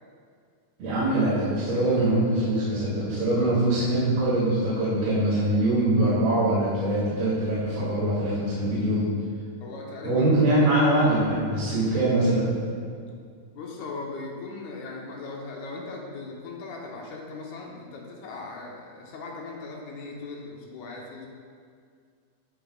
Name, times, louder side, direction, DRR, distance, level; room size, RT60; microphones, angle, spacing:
voice 1, 0.8-9.1 10.0-12.6, right 1 dB, 90° right, -12 dB, 4.4 m, -23 dB
voice 2, 9.6-10.3 13.5-21.3, left 3 dB, 65° left, -1 dB, 2.1 m, -38 dB
13.0 x 7.7 x 2.4 m, 2.2 s
omnidirectional pair, 4.2 m